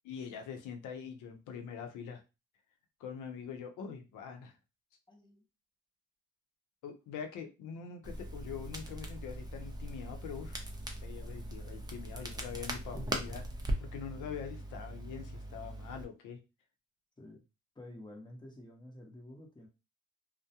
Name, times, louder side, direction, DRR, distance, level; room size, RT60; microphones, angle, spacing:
voice 1, 0.0-2.2 3.0-4.6 6.8-10.6 11.0-13.4 13.9-16.4, left 7 dB, 90° left, 5 dB, 0.6 m, -44 dB
voice 2, 5.1-5.4 17.2-17.4 17.8-19.7, left 1 dB, 15° left, 1 dB, 0.8 m, -50 dB
Crackle, 8.0-16.0, right 1 dB, 15° right, 0.6 m, -40 dB
2.3 x 2.1 x 2.7 m, 0.28 s
cardioid pair, 90°, 30 cm